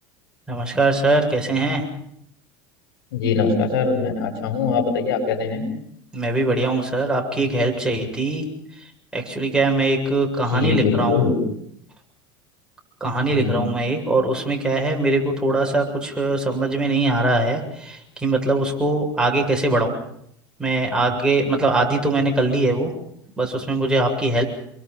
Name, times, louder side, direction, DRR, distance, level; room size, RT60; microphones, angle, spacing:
voice 1, 0.5-1.8 6.1-8.4 9.1-11.3 13.0-19.9 20.6-22.9 23.4-24.4, right 2 dB, 5° right, 1 dB, 7.5 m, -21 dB
voice 2, 3.1-5.7 10.5-11.3 13.3-13.6, left 5 dB, 85° left, 5 dB, 7.4 m, -22 dB
29.0 x 24.5 x 5.6 m, 0.69 s
supercardioid pair, 100°, 12 cm